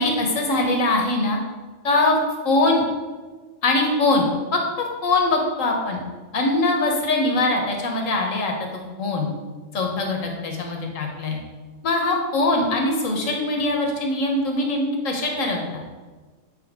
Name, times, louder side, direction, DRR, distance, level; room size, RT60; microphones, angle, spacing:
voice 1, 0.0-1.4 1.8-2.2 2.4-2.8 3.6-4.3 4.5-6.0 6.3-8.5 9.0-9.3 9.7-11.4 11.8-15.8, left 2 dB, 80° left, 2 dB, 1.4 m, -22 dB
7.9 x 4.3 x 3.5 m, 1.4 s
omnidirectional pair, 1.3 m